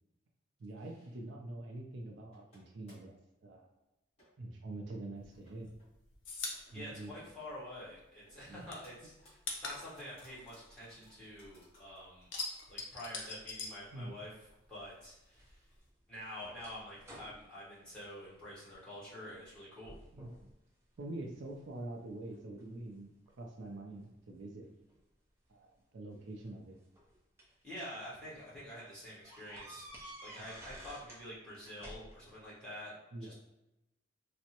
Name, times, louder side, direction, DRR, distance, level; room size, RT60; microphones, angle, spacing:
voice 1, 0.6-3.1 3.4-3.7 4.4-5.7 6.7-7.1 8.5-8.7 13.9-14.1 20.1-20.3 21.0-24.7 25.5-26.8 30.4-30.5 33.1-33.3, right 2 dB, 65° right, 1 dB, 0.4 m, -45 dB
sound 1, 1.3-1.8 2.3-3.2 3.6-3.7 4.2-4.6 4.9-5.0 5.3-5.9 6.4-7.5 7.8-8.9 9.2-12.2 12.5-12.6 13.1-13.2 13.4-13.5 14.5-14.6 15.0-15.1, equal, 30° left, 1.4 m, -64 dB
sound 2, 5.2-8.0 8.3-11.6 11.9-14.5 14.8-15.9, left 4 dB, 65° left, 0.5 m, -44 dB
voice 2, 6.4-12.3 12.7-14.3 14.7-15.6 16.1-20.0 27.6-32.9 33.2-33.3, left 1 dB, 5° left, -9 dB, 1.1 m, -48 dB
sound 3, 15.3-18.8 19.2-19.6 19.8-20.5 21.0-21.7 22.3-23.7 24.9-25.0 26.2-27.6 28.2-28.3 28.6-28.7 29.2-31.3 31.5-32.4, right 1 dB, 15° right, 0.6 m, -53 dB
3.4 x 2.0 x 2.8 m, 0.93 s
head